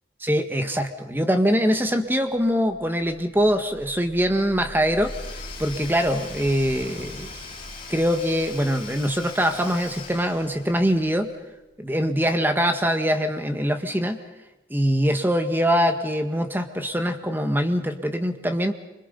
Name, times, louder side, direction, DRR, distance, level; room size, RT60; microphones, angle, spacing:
voice 1, 0.2-5.1 5.6-7.3 7.9-11.3 11.8-14.2 14.7-18.7, equal, 10° right, 7 dB, 1.7 m, -23 dB
sound 1, 2.0-12.6, right 1 dB, 85° right, 5.5 m, -44 dB
Domestic sounds home sounds / Tools, 4.9-11.0, left 5 dB, 30° left, 3.4 m, -41 dB
27.5 x 25.5 x 5.5 m, 1.0 s
head